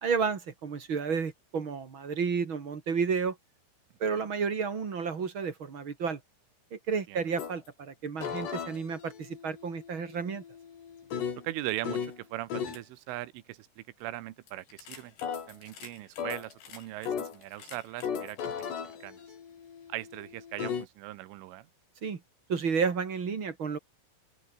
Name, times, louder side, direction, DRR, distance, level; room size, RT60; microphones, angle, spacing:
voice 1, 0.0-3.4 4.0-6.2 6.7-10.4 22.0-22.2 22.5-23.8, right 5 dB, 40° right, 2.0 m, -31 dB
sound 1, 7.4-7.6 8.2-12.2 12.5-12.8 14.5-20.9, left 7 dB, 60° left, 5.9 m, -37 dB
voice 2, 11.4-15.2 15.5-18.8 19.0-19.2 19.9-21.7, right 16 dB, 80° right, 3.7 m, -39 dB
open air
omnidirectional pair, 5.7 m